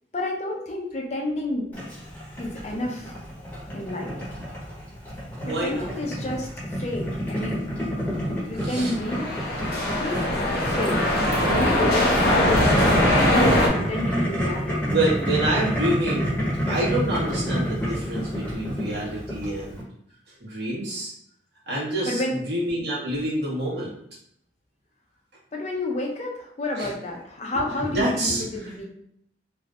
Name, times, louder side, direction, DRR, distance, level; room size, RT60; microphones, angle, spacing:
voice 1, 0.1-1.7 2.4-3.1 3.7-4.2 5.4-7.7 8.5-9.4 10.0-14.9 22.0-22.4 25.5-28.8, left 1 dB, 40° left, -1 dB, 0.5 m, -30 dB
Boiling, 1.7-19.8, equal, 10° left, 1.0 m, -29 dB
voice 2, 5.4-5.9 8.6-8.9 11.4-11.6 14.8-19.8 20.4-21.1 21.7-22.2 22.5-23.9 26.8-26.9 27.5-28.7, right 1 dB, 70° right, -7 dB, 1.4 m, -27 dB
sound 1, 8.8-13.7, left 1 dB, 65° left, 0.9 m, -21 dB
3.3 x 2.6 x 2.4 m, 0.71 s
head